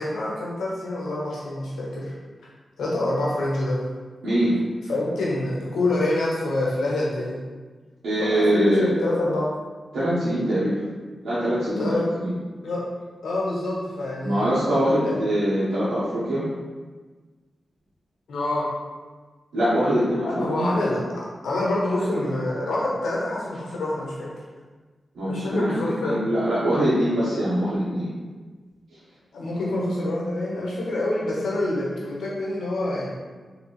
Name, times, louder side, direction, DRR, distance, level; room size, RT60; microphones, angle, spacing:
voice 1, 0.0-2.1 2.8-3.8 4.9-7.4 8.2-9.5 11.8-12.1 12.6-12.8 13.2-14.5 15.0-15.1 18.3-18.7 20.2-21.0 21.4-24.3 25.2-26.3 29.3-33.1, left 1 dB, 90° left, -5 dB, 1.0 m, -26 dB
voice 2, 4.2-4.6 8.0-8.9 9.9-10.7 11.2-12.3 14.2-16.4 19.5-20.7 25.1-28.1, equal, 90° right, -13 dB, 1.1 m, -23 dB
4.2 x 3.0 x 3.2 m, 1.4 s
cardioid pair, 45°, 0 cm